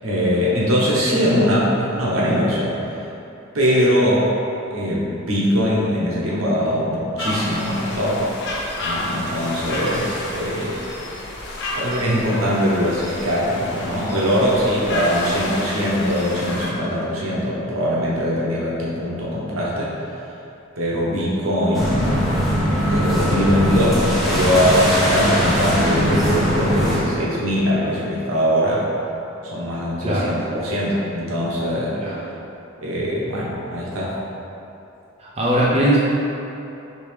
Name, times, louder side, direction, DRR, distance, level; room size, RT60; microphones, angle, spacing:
voice 1, 0.0-3.0 3.5-4.3 4.7-8.3 8.8-10.8 11.8-19.9 20.8-22.5 22.9-28.8 29.5-32.1 32.8-34.1, equal, 90° right, -6 dB, 1.0 m, -21 dB
sound 1, 7.2-16.7, left 1 dB, 60° left, 0.6 m, -30 dB
sound 2, 21.7-27.0, equal, ahead, 0.9 m, -20 dB
voice 2, 30.0-30.3 32.0-32.2 35.2-36.0, right 1 dB, 30° right, -7 dB, 0.7 m, -19 dB
5.1 x 2.9 x 3.3 m, 2.9 s
head